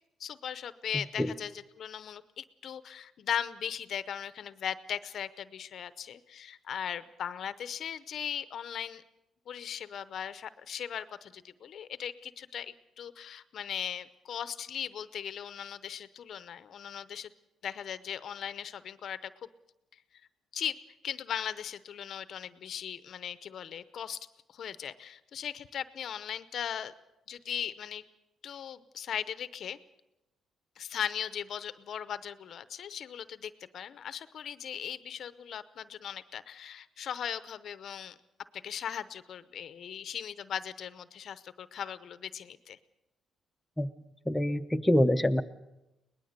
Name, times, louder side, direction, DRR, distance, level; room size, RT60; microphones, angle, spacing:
voice 1, 0.2-1.5 1.8-9.0 9.5-17.3 17.6-19.5 20.5-20.8 21.0-26.9 27.3-28.0 28.4-29.8 30.8-38.1 38.5-42.8, left 9 dB, 60° left, 14 dB, 0.8 m, -38 dB
voice 2, 0.9-1.3 43.8-43.9 44.3-45.4, left 1 dB, 10° left, 5 dB, 0.9 m, -26 dB
22.5 x 19.5 x 6.7 m, 0.95 s
cardioid pair, 105°, 0 cm